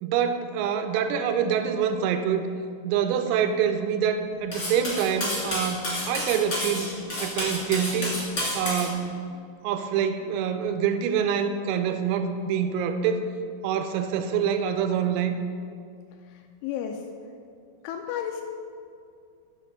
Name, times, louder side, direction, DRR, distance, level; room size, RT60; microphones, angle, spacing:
voice 1, 0.0-2.5 2.8-6.9 7.2-8.2 8.5-9.1 9.6-13.3 13.6-15.3, right 7 dB, 90° right, 8 dB, 3.3 m, -26 dB
Cutlery silverware, 4.5-8.9, left 1 dB, 25° left, 2.4 m, -30 dB
voice 2, 16.3-17.0 17.8-18.4, left 9 dB, 85° left, 4 dB, 2.8 m, -33 dB
9.4 x 6.6 x 6.4 m, 2.3 s
omnidirectional pair, 5.9 m